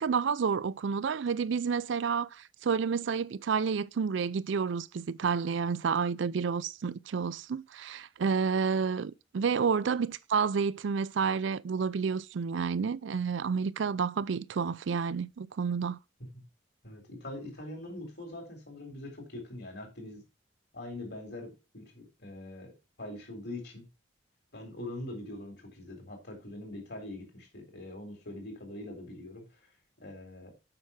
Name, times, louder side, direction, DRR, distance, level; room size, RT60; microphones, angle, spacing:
voice 1, 0.0-16.0, right 6 dB, 70° right, 0.4 m, -30 dB
voice 2, 16.8-20.2 20.7-22.7 23.0-23.9 24.5-29.4 30.0-30.5, left 1 dB, 55° left, 3.9 m, -43 dB
7.8 x 5.9 x 5.7 m
head